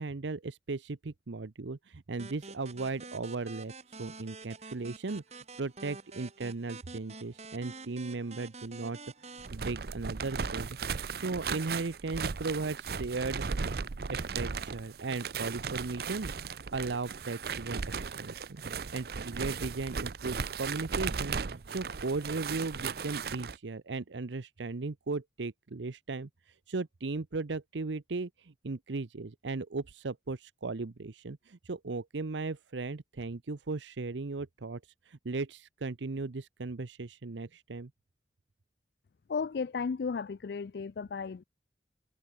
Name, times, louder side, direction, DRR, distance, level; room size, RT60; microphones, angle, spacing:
voice 1, 0.0-5.2 5.6-9.0 9.2-10.8 11.1-13.7 14.1-18.6 18.9-34.8 35.1-37.9, right 3 dB, 85° right, 0.8 m, -37 dB
sound 1, 2.2-9.5, right 3 dB, 35° right, 2.4 m, -48 dB
sound 2, 9.4-23.6, right 5 dB, 55° right, 0.6 m, -36 dB
voice 2, 39.3-41.4, left 5 dB, 60° left, 0.4 m, -34 dB
head